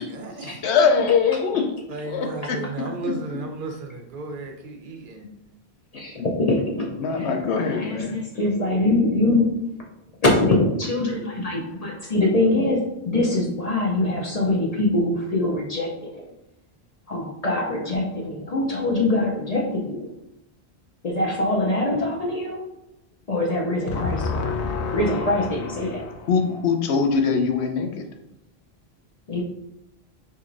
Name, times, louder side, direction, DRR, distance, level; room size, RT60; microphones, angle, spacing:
voice 1, 0.0-0.6 1.9-5.3, right 3 dB, 60° right, 3 dB, 0.7 m, -34 dB
voice 2, 0.6-1.7 2.0-2.6 5.2-5.4 6.2-6.3 6.9-8.2 23.9-28.0, left 5 dB, 90° left, 4 dB, 0.9 m, -23 dB
voice 3, 5.9-6.9 7.2-7.3 7.7-9.7 10.2-16.3 17.1-20.1 21.0-22.6 23.3-26.1 29.3-29.4, left 2 dB, 45° left, -2 dB, 0.5 m, -23 dB
4.4 x 2.7 x 2.5 m, 0.85 s
omnidirectional pair, 1.1 m